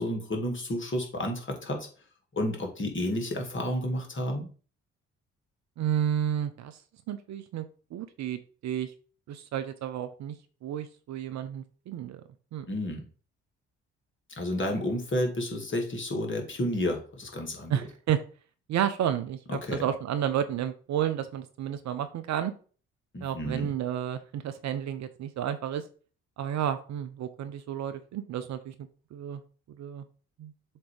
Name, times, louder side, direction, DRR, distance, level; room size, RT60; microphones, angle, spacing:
voice 1, 0.0-1.9 2.3-4.5 12.7-13.0 14.3-17.7 19.5-19.9 23.1-23.7, left 1 dB, 30° left, 2 dB, 2.2 m, -31 dB
voice 2, 5.8-6.8 7.1-7.6 7.9-8.9 9.3-10.3 10.6-12.2 12.5-12.7 17.7-18.2 18.7-22.5 23.2-25.8 26.4-28.7 29.1-29.4 29.8-30.0 30.4-30.5, right 10 dB, 50° right, 10 dB, 0.7 m, -31 dB
7.3 x 3.0 x 4.9 m, 0.39 s
figure-of-eight pair, 45°, 37 cm